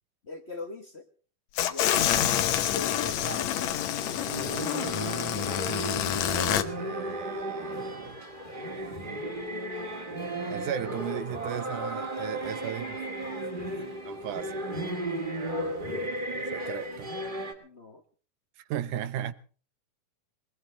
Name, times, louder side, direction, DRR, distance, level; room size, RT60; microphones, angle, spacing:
voice 1, 0.2-1.1 1.6-2.2 2.7-4.0 4.4-4.6 12.6-14.1 15.2-15.6 17.6-18.0, left 2 dB, 50° left, 0.7 m, -43 dB
sound 1, 1.6-6.6, left 11 dB, 70° left, 2.1 m, -27 dB
sound 2, 4.0-17.5, right 1 dB, 15° right, 2.4 m, -34 dB
voice 2, 6.8-8.2 10.5-13.0 14.1-14.6 16.3-17.1 18.7-19.3, right 10 dB, 80° right, 2.4 m, -36 dB
21.0 x 20.0 x 3.4 m
omnidirectional pair, 3.6 m